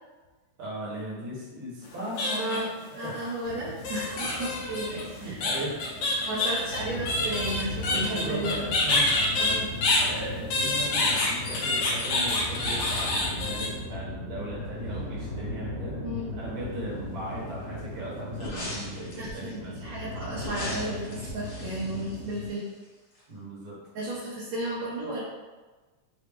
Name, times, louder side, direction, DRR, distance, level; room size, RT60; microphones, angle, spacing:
voice 1, 0.6-2.6 2.9-3.2 5.2-5.9 7.9-9.4 10.0-16.0 16.3-19.8 20.1-20.4 21.8-22.1 23.3-23.8, right 1 dB, 50° right, -7 dB, 1.7 m, -38 dB
sound 1, 1.8-2.8 3.8-10.1 10.5-13.7, left 2 dB, 80° left, 1.3 m, -27 dB
voice 2, 2.3-2.7 2.9-5.4 6.3-8.7 9.4-9.7 16.0-16.4 19.2-22.7 24.0-25.2, right 1 dB, 70° right, -9 dB, 1.9 m, -33 dB
sound 2, 3.4-22.5, left 1 dB, 40° left, 1.8 m, -38 dB
sound 3, 18.4-19.5 20.4-22.8 23.1-23.2, left 1 dB, 60° left, 1.0 m, -39 dB
5.0 x 2.6 x 3.5 m, 1.3 s
omnidirectional pair, 3.4 m